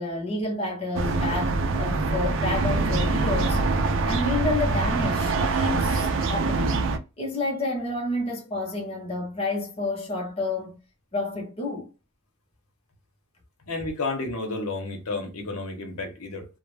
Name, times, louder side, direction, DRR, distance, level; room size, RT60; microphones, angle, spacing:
voice 1, 0.0-3.6 4.0-6.8 7.2-10.8 11.1-11.9, left 2 dB, 25° left, 0.7 m, -29 dB
sound 1, 0.9-7.0, right 3 dB, 60° right, 0.4 m, -24 dB
voice 2, 13.7-16.5, left 3 dB, 80° left, 0.8 m, -31 dB
2.2 x 2.0 x 3.1 m
head